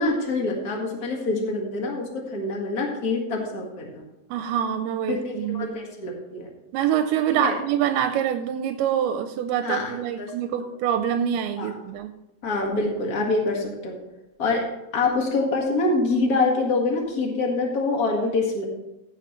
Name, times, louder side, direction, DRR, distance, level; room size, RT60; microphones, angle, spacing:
voice 1, 0.0-4.0 5.1-6.5 7.4-7.5 9.6-9.9 10.2-10.3 11.6-11.7 12.4-14.0 14.4-14.6 14.9-18.6, left 3 dB, 50° left, 0 dB, 1.0 m, -25 dB
voice 2, 4.3-5.8 6.7-12.1, right 9 dB, 85° right, 8 dB, 2.5 m, -25 dB
15.0 x 8.1 x 3.1 m, 0.96 s
omnidirectional pair, 4.5 m